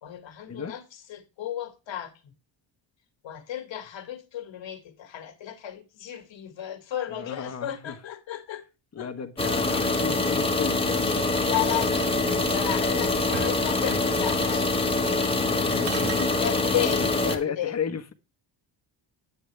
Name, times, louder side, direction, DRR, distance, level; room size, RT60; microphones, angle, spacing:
voice 1, 0.0-2.3 3.2-8.7 9.0-9.1 11.0-11.1 11.4-15.9 16.4-17.8, left 11 dB, 70° left, 2.0 m, -34 dB
voice 2, 7.1-7.9 8.9-11.3 15.4-18.1, left 7 dB, 35° left, 1.2 m, -34 dB
sound 1, 9.4-17.4, left 2 dB, 10° left, 1.4 m, -25 dB
sound 2, 11.5-12.8 13.3-14.3 15.2-15.5 15.8-16.3, right 6 dB, 60° right, 1.8 m, -39 dB
9.2 x 8.4 x 3.3 m
cardioid pair, 145°, 46 cm